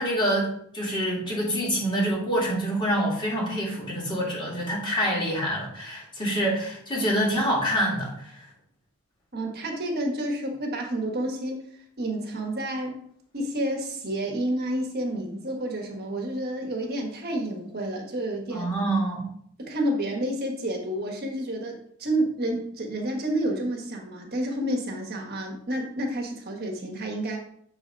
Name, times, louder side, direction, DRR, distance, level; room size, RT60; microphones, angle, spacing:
voice 1, 0.0-8.5 18.5-19.3, equal, 25° left, -4 dB, 2.4 m, -26 dB
voice 2, 9.3-11.6 12.0-13.0 13.3-18.7 19.6-27.4, right 1 dB, 50° right, 1 dB, 1.3 m, -29 dB
6.7 x 4.0 x 5.1 m, 0.66 s
head